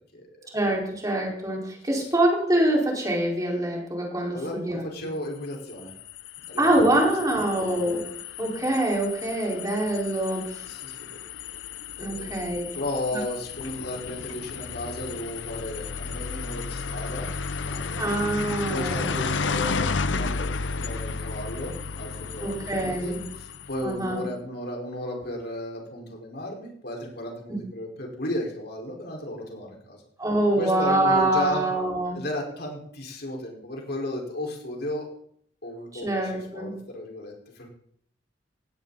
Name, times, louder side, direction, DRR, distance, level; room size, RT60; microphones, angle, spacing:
voice 1, 0.5-5.1 6.6-8.1 8.4-10.6 12.0-12.7 13.1-13.2 18.0-19.1 22.4-23.2 23.8-24.2 27.5-27.6 30.2-32.2 35.9-36.7, right 1 dB, 20° right, -1 dB, 5.0 m, -25 dB
voice 2, 4.3-5.9 6.5-7.1 7.4-7.6 10.6-11.2 12.0-17.3 17.5-18.0 18.7-30.0 30.6-31.6 32.1-35.1 35.6-36.1 36.5-37.7, left 1 dB, 60° left, 0 dB, 5.1 m, -34 dB
sound 1, 5.5-24.0, left 4 dB, 85° left, 0.8 m, -33 dB
18.5 x 16.5 x 4.2 m, 0.66 s
head